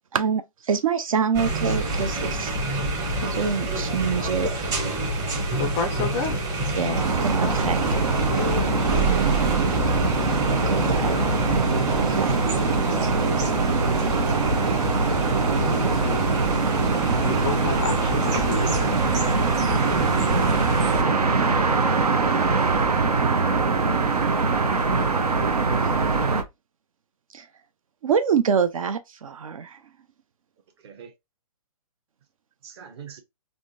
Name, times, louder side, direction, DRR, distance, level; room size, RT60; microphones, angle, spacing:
voice 1, 0.1-2.6 3.2-4.7 6.7-7.9 8.7-9.9 10.3-11.7 12.0-12.4 25.8-25.9 27.3-27.5 28.0-29.8 33.1-33.2, right 6 dB, 65° right, 0.5 m, -27 dB
sound 1, 1.3-21.0, right 1 dB, 20° right, 0.9 m, -27 dB
voice 2, 5.6-6.4 6.7-7.0 7.4-7.7 15.4-16.3 17.2-19.0, left 5 dB, 15° left, 0.4 m, -31 dB
sound 2, 6.9-26.4, right 4 dB, 85° right, 0.8 m, -23 dB
voice 3, 24.2-25.2 30.8-31.1 32.6-33.2, right 7 dB, 45° right, 1.0 m, -42 dB
3.5 x 2.5 x 2.6 m
hypercardioid pair, 140°, 19 cm